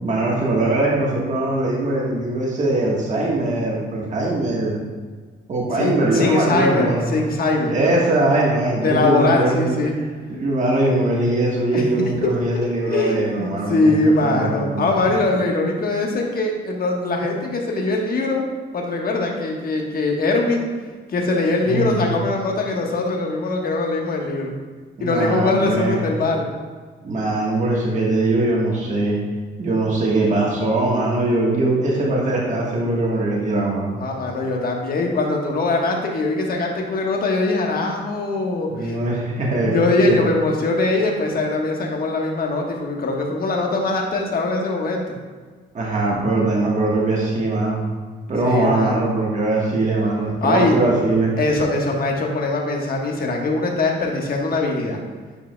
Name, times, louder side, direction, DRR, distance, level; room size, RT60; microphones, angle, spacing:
voice 1, 0.0-4.8 5.5-7.1 7.7-9.8 10.3-13.9 14.2-15.1 21.6-22.1 25.0-26.0 27.0-29.2 29.6-34.0 38.7-40.3 45.7-47.8 48.3-51.3, right 2 dB, 40° right, -4 dB, 1.4 m, -21 dB
voice 2, 5.8-7.7 8.8-9.9 11.7-11.8 12.9-18.4 18.7-20.7 21.1-24.5 25.0-26.5 34.0-38.9 39.6-45.0 48.4-49.0 50.4-50.7 51.4-55.0, left 2 dB, 50° left, 0 dB, 1.3 m, -21 dB
9.9 x 5.0 x 2.3 m, 1.5 s
cardioid pair, 90°, 20 cm